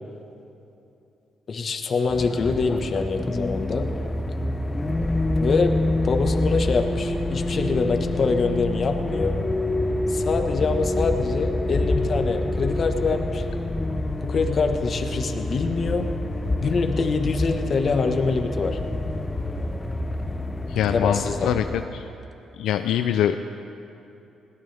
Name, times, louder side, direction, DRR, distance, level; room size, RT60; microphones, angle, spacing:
voice 1, 1.5-3.9 5.4-5.8 6.0-9.4 10.1-13.4 14.2-16.1 16.6-18.8 20.9-21.5, left 4 dB, 45° left, 5 dB, 1.4 m, -25 dB
sound 1, 2.1-21.9, left 1 dB, 15° left, 0.9 m, -27 dB
voice 2, 20.7-22.1 22.6-23.4, left 10 dB, 80° left, 8 dB, 0.4 m, -24 dB
21.0 x 17.0 x 3.5 m, 2.8 s
cardioid pair, 90°, 0 cm